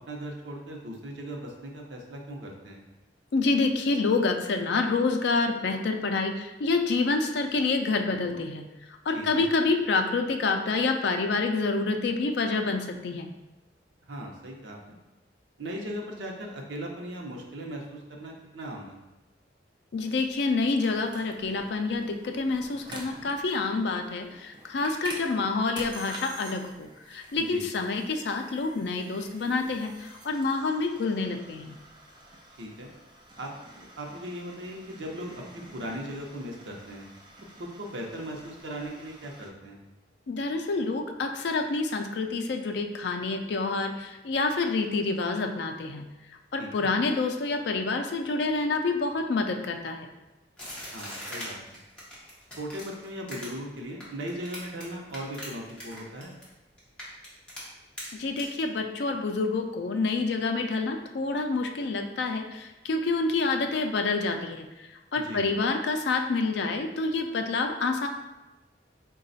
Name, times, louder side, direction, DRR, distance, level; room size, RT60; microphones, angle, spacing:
voice 1, 0.1-2.8 9.1-9.5 14.1-15.0 15.6-19.0 27.4-27.6 32.6-32.9 33.4-37.1 37.6-39.8 46.6-46.9 50.9-51.6 52.6-56.4 65.2-65.5, equal, 80° right, 0 dB, 0.7 m, -38 dB
voice 2, 3.3-8.7 9.1-13.3 19.9-31.8 40.3-46.1 46.5-50.1 58.1-64.7 65.1-68.1, left 3 dB, 65° left, 5 dB, 0.4 m, -27 dB
sound 1, 20.0-39.5, right 1 dB, 25° right, 0.4 m, -48 dB
sound 2, 50.6-54.8 55.1-56.5 56.8-57.6 58.0-58.1 58.4-58.5, equal, 5° left, 0.9 m, -40 dB
4.0 x 2.3 x 3.9 m, 1.0 s
head